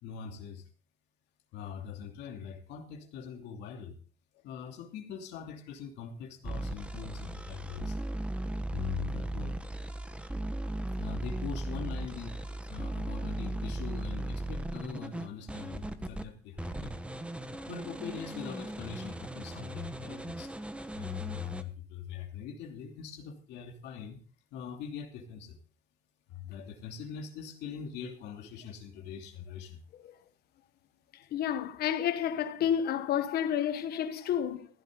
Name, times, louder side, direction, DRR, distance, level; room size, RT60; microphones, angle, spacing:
voice 1, 0.0-0.6 1.5-4.0 4.3-8.0 8.7-9.6 11.0-12.4 12.7-16.9 17.7-20.5 20.9-24.2 24.5-25.6 26.3-29.8, left 8 dB, 85° left, 2.8 m, -42 dB
sound 1, 6.4-16.2 16.6-21.6, right 1 dB, 5° right, 1.2 m, -37 dB
voice 2, 31.3-34.7, left 9 dB, 70° left, 1.4 m, -30 dB
15.0 x 12.0 x 3.9 m
cardioid pair, 110°, 17 cm